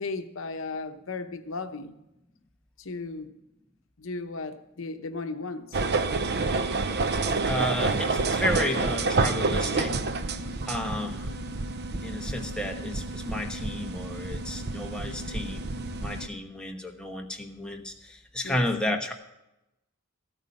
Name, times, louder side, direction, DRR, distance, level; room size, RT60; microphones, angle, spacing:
voice 1, 0.0-1.9 2.8-3.4 4.0-5.8 18.4-18.7, left 3 dB, 65° left, 0.9 m, -35 dB
sound 1, 5.7-16.3, right 3 dB, 50° right, 0.6 m, -29 dB
voice 2, 7.5-9.9 10.7-11.4 12.0-15.7 16.0-19.1, left 1 dB, 5° left, 1.2 m, -32 dB
14.0 x 9.0 x 5.3 m
head